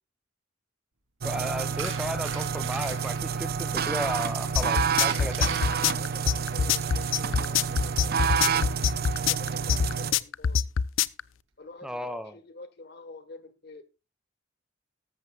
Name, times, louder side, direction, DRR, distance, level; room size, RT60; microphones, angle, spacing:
voice 1, 1.2-5.5 11.8-12.4, equal, 5° right, 0.5 m, -34 dB
sound 1, 1.2-10.1, right 6 dB, 55° right, 0.7 m, -29 dB
sound 2, 1.7-3.2 5.0-7.4 8.6-8.8, right 6 dB, 85° right, 3.1 m, -41 dB
sound 3, 4.6-11.2, left 7 dB, 85° left, 0.5 m, -24 dB
voice 2, 5.3-8.6 9.0-10.7 11.6-13.8, left 3 dB, 55° left, 1.4 m, -47 dB
13.5 x 13.5 x 2.4 m
head